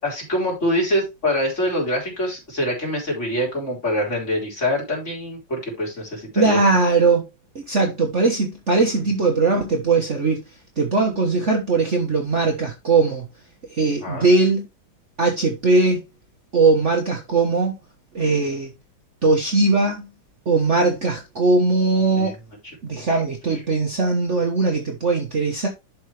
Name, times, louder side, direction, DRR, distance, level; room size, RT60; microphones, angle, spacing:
voice 1, 0.0-6.6 14.0-14.3 22.2-22.3 23.1-23.2, left 1 dB, 35° left, 4.0 m, -24 dB
voice 2, 6.3-7.2 7.5-10.4 10.8-13.3 13.7-14.7 15.2-16.0 16.5-17.8 18.1-18.7 19.2-20.1 20.4-22.3 22.8-25.7, right 3 dB, 40° right, 1.4 m, -20 dB
11.5 x 4.8 x 3.3 m
omnidirectional pair, 2.1 m